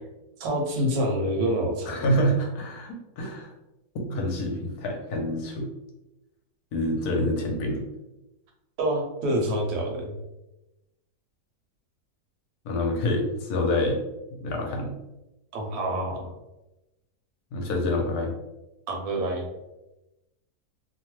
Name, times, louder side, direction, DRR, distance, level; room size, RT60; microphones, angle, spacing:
voice 1, 0.4-2.0 8.8-10.2 15.5-16.3 18.9-19.4, right 1 dB, 65° right, 1 dB, 1.1 m, -27 dB
voice 2, 1.9-3.5 4.1-5.7 6.7-7.8 12.6-14.0 14.4-14.9 17.5-18.3, left 1 dB, 70° left, 1 dB, 1.1 m, -27 dB
2.9 x 2.1 x 3.0 m, 0.96 s
omnidirectional pair, 1.8 m